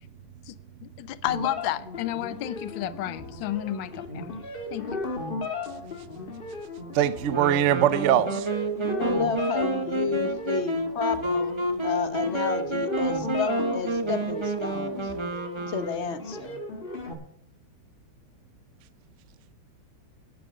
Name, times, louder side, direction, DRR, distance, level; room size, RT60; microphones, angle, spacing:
voice 1, 0.5-4.3 4.7-5.0, left 13 dB, 75° left, 1.4 m, -32 dB
sound 1, 1.3-17.1, left 3 dB, 30° left, 1.8 m, -36 dB
voice 2, 6.9-8.5, right 11 dB, 70° right, 0.7 m, -22 dB
Wind instrument woodwind instrument, 7.3-16.3, right 1 dB, 30° right, 0.5 m, -29 dB
voice 3, 9.0-15.1 15.7-16.6, left 5 dB, 45° left, 0.9 m, -31 dB
10.5 x 10.5 x 6.3 m
omnidirectional pair, 2.2 m